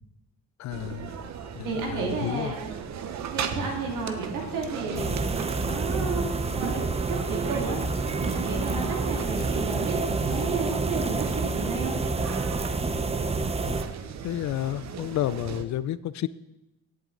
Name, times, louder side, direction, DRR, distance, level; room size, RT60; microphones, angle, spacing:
voice 1, 0.6-1.1 1.6-2.5 13.7-13.8 14.2-16.3, left 13 dB, 65° left, 18 dB, 0.5 m, -31 dB
sound 1, 0.7-15.7, right 7 dB, 65° right, 0.9 m, -37 dB
voice 2, 1.6-2.7 3.3-11.9, right 4 dB, 90° right, 0 dB, 2.5 m, -32 dB
sound 2, 4.9-13.8, right 3 dB, 20° right, 0.7 m, -28 dB
16.5 x 8.1 x 3.9 m, 0.97 s
cardioid pair, 90°, 30 cm